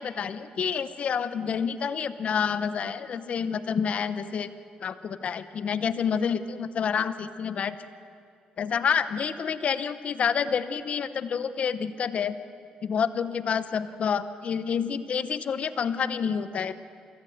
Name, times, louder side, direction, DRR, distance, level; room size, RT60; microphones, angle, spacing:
voice 1, 0.0-4.5 4.8-7.7 8.6-12.4 12.8-16.7, left 7 dB, 55° left, 13 dB, 0.9 m, -28 dB
25.0 x 14.0 x 7.9 m, 2.3 s
supercardioid pair, 75°, 3 cm